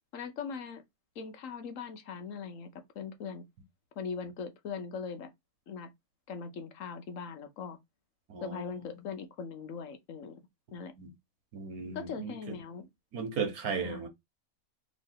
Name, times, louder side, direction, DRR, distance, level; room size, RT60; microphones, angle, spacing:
voice 1, 0.1-0.8 1.2-2.7 2.9-3.4 4.0-5.3 5.7-5.9 6.3-7.8 8.4-10.4 10.7-10.9 11.9-12.9 13.8-14.1, left 6 dB, 65° left, 1.1 m, -40 dB
voice 2, 8.3-9.1 11.0-11.1 11.5-12.3 13.1-14.1, right 5 dB, 90° right, 1.5 m, -36 dB
3.2 x 3.1 x 4.5 m
omnidirectional pair, 1.5 m